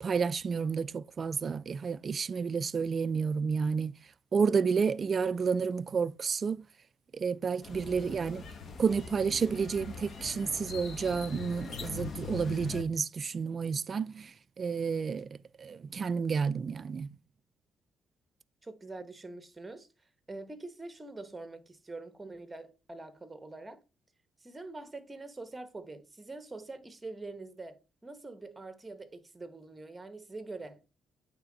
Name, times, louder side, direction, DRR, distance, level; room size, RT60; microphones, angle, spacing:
voice 1, 0.0-3.9 4.3-6.6 7.1-8.4 8.8-17.1, right 5 dB, 45° right, 0.3 m, -30 dB
sound 1, 7.6-12.8, left 6 dB, 50° left, 1.1 m, -42 dB
voice 2, 18.6-19.9 20.3-23.8 24.4-30.9, right 2 dB, 20° right, 1.1 m, -44 dB
8.9 x 3.5 x 3.9 m
cardioid pair, 90°, 0 cm